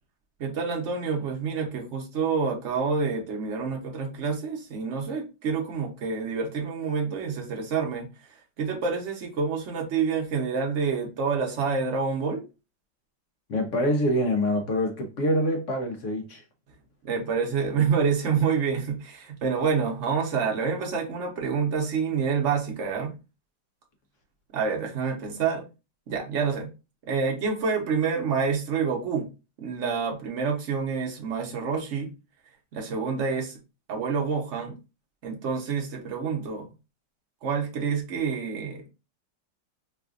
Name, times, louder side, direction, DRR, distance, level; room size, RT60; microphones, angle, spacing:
voice 1, 0.4-8.1 8.6-12.4 17.0-23.1 24.5-25.6 26.1-26.7 27.1-29.3 29.6-32.1 32.7-33.6 33.9-34.7 35.2-36.7 37.4-38.9, right 5 dB, 50° right, 1.0 m, -27 dB
voice 2, 13.5-16.4, equal, 70° left, 0.7 m, -25 dB
4.8 x 2.4 x 2.4 m
omnidirectional pair, 2.0 m